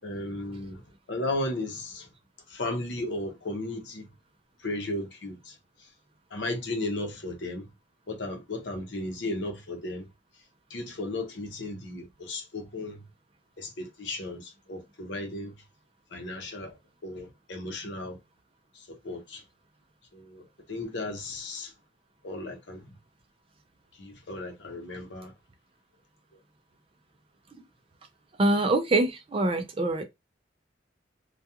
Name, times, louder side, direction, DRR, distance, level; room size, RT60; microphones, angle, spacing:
voice 1, 0.0-0.8 1.1-2.1 2.5-4.1 4.6-5.9 6.3-7.7 8.1-10.1 10.7-13.0 13.6-15.5 16.1-16.8 17.0-18.2 18.7-19.4 20.1-21.7 22.2-22.9 23.9-25.3, left 2 dB, 65° left, 0.7 m, -35 dB
voice 2, 28.4-30.0, right 2 dB, 30° right, 0.4 m, -24 dB
2.3 x 2.2 x 2.8 m
head